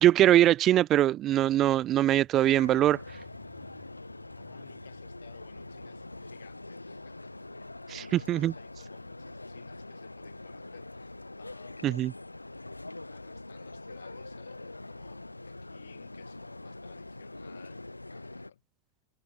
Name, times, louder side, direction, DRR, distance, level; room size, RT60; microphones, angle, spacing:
voice 1, 0.0-3.0 7.9-8.0 8.3-8.5 11.8-12.1, right 13 dB, 30° right, 0.3 m, -22 dB
Motorcycle, 1.3-8.9, left 3 dB, 10° left, 4.0 m, -63 dB
sound 1, 2.4-18.5, left 2 dB, 85° left, 0.9 m, -44 dB
voice 2, 4.4-12.4 13.1-18.6, left 9 dB, 65° left, 8.0 m, -56 dB
figure-of-eight pair, 90°, 0 cm